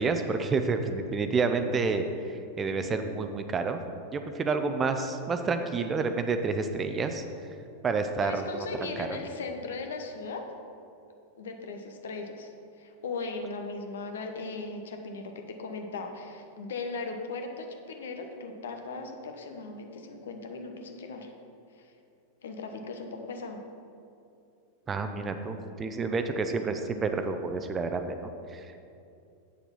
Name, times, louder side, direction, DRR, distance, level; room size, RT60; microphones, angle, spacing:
voice 1, 0.0-3.8 4.1-7.2 7.8-9.1 24.9-28.8, right 4 dB, 20° right, 7 dB, 0.6 m, -29 dB
voice 2, 8.2-10.4 11.4-21.3 21.7-21.9 22.4-23.6, left 3 dB, 60° left, 4 dB, 1.0 m, -38 dB
8.4 x 6.8 x 5.8 m, 2.6 s
figure-of-eight pair, 90°, 0 cm